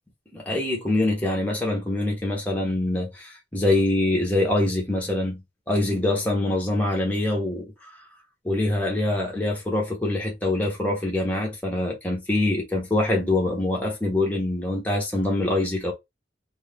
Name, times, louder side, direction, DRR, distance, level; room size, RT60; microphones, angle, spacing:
voice 1, 0.3-5.4 5.7-7.9 8.4-15.9, left 2 dB, 10° left, 0.9 m, -24 dB
2.4 x 2.4 x 3.4 m
head